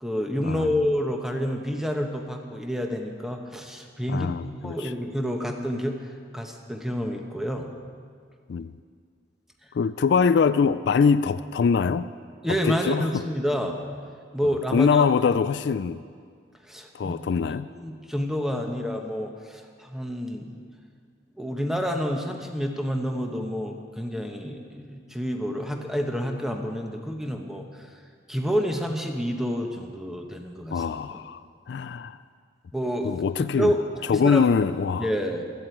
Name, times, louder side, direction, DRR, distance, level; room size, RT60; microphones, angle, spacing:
voice 1, 0.0-4.3 4.6-7.7 9.6-9.7 12.4-13.8 14.3-15.1 16.6-20.6 21.3-28.0 28.3-30.9 31.1-31.2 32.7-33.2 33.5-34.5 35.0-35.4, equal, 5° right, 3 dB, 1.1 m, -29 dB
voice 2, 4.1-4.9 8.5-8.7 9.7-12.1 12.6-13.2 14.7-16.0 16.9-17.7 30.7-31.4 31.7-32.2 33.0-33.7 34.1-35.1, left 5 dB, 65° left, 13 dB, 0.3 m, -23 dB
16.0 x 13.0 x 4.6 m, 2.1 s
head